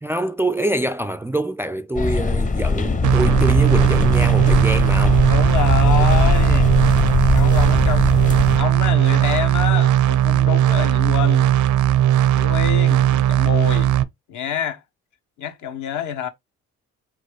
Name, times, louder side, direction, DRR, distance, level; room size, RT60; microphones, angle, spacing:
voice 1, 0.0-5.3, right 1 dB, 10° right, 0.3 m, -25 dB
sound 1, 1.9-8.6, left 4 dB, 25° left, 0.7 m, -20 dB
sound 2, 3.0-14.0, right 11 dB, 75° right, 0.6 m, -17 dB
voice 2, 5.3-6.7 7.3-8.2 8.6-11.5 12.4-13.9 14.3-14.8 15.4-16.3, left 8 dB, 75° left, 1.1 m, -27 dB
4.1 x 2.4 x 4.6 m
cardioid pair, 90°, 30 cm